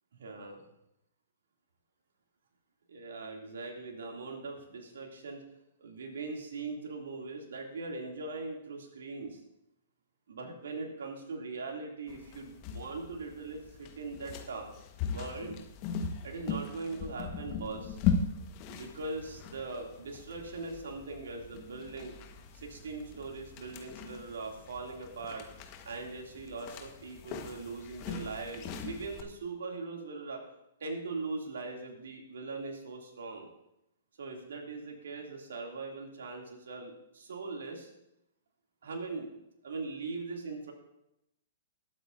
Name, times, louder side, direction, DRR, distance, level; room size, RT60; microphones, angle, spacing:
voice 1, 0.1-0.6 2.9-5.4 5.8-9.4 10.3-14.7 15.1-15.6 16.2-18.0 18.7-22.1 22.5-25.5 25.8-30.4 30.8-33.5 34.2-37.9 38.8-39.3 39.6-40.7, right 3 dB, 75° right, 1 dB, 2.6 m, -40 dB
sound 1, 12.1-29.2, left 6 dB, 40° left, 1.3 m, -39 dB
20.0 x 8.6 x 2.6 m, 0.85 s
hypercardioid pair, 120°, 0 cm